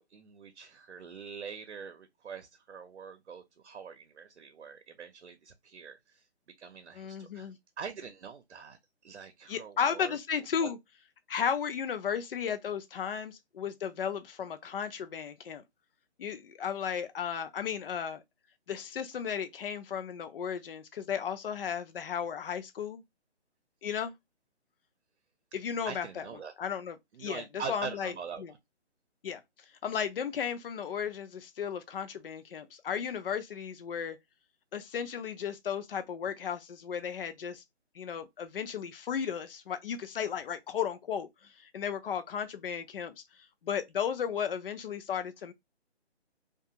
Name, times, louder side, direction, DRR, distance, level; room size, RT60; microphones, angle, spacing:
voice 1, 0.1-6.2 6.6-10.2 10.6-10.7 25.8-26.5 27.1-28.6, right 6 dB, 75° right, 0.7 m, -44 dB
voice 2, 6.9-7.6 9.5-10.8 11.3-15.6 16.2-18.2 18.7-23.0 23.8-24.1 25.5-26.2 26.6-28.1 28.4-28.5 29.2-29.4 29.8-34.2 34.7-37.6 38.0-41.3 41.7-43.2 43.6-45.5, left 7 dB, 55° left, 0.6 m, -34 dB
2.4 x 2.3 x 2.8 m
hypercardioid pair, 160°, 33 cm